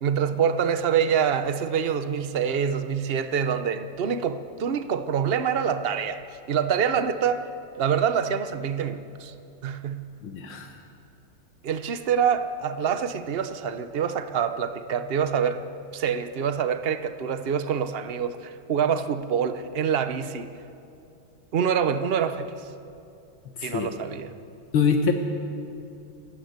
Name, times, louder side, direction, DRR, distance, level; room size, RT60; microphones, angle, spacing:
voice 1, 0.0-6.2 6.5-7.5 7.8-9.3 9.6-10.1 11.6-15.7 15.9-20.5 21.5-22.6 23.6-24.3, right 7 dB, 65° right, 10 dB, 0.6 m, -26 dB
voice 2, 10.2-10.7 23.6-23.9 24.7-25.1, left 6 dB, 75° left, 4 dB, 2.0 m, -24 dB
28.5 x 14.0 x 8.0 m, 2.6 s
omnidirectional pair, 2.3 m